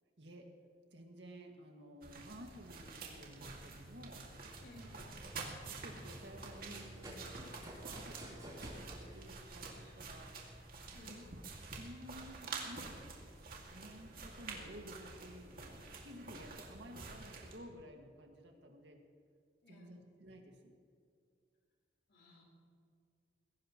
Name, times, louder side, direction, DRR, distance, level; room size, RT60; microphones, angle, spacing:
voice 1, 0.2-0.5 0.9-4.2 4.7-5.1 5.6-10.3 11.1-11.4 11.8-13.1 13.3-19.0 19.7-20.7, equal, 75° right, 2 dB, 2.0 m, -54 dB
sound 1, 2.0-17.6, right 3 dB, 55° right, 2.3 m, -49 dB
voice 2, 4.6-5.2 10.9-11.3 19.6-20.1 22.1-22.4, left 2 dB, 70° left, -2 dB, 4.2 m, -59 dB
Run, 4.6-10.6, right 1 dB, 25° right, 3.8 m, -53 dB
21.0 x 17.0 x 3.1 m, 2.3 s
head